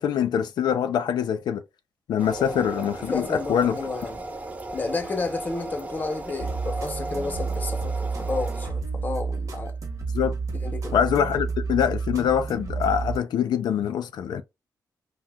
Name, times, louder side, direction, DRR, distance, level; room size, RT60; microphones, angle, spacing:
voice 1, 0.0-1.6 2.1-3.7 10.1-10.3 10.9-14.4, left 8 dB, 85° left, 0.3 m, -24 dB
sound 1, 2.2-8.7, right 2 dB, 20° right, 0.5 m, -36 dB
voice 2, 3.0-4.3 4.7-9.7 10.6-11.0, left 3 dB, 25° left, 0.6 m, -31 dB
sound 2, 6.4-13.2, right 4 dB, 50° right, 0.8 m, -30 dB
2.7 x 2.0 x 3.4 m
wide cardioid pair, 145°, 7 cm